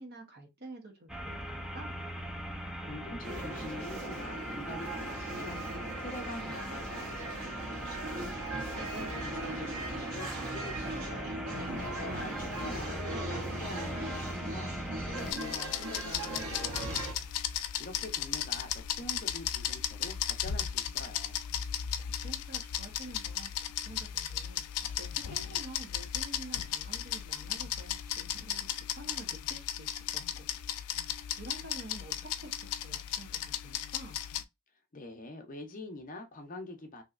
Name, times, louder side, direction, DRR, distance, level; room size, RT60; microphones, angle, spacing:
voice 1, 0.0-1.9 12.2-12.6 22.2-23.5 23.8-24.6 24.9-30.5 31.4-34.3, right 2 dB, 45° right, 0.9 m, -49 dB
sound 1, 1.1-15.3, equal, ahead, 0.3 m, -40 dB
voice 2, 2.8-11.5 12.1-14.7 15.1-21.4 34.9-37.0, left 2 dB, 35° left, 0.6 m, -45 dB
sound 2, 3.2-17.1, right 2 dB, 75° right, 0.9 m, -39 dB
sound 3, 15.2-34.4, left 10 dB, 90° left, 0.4 m, -36 dB
3.1 x 2.8 x 2.4 m
head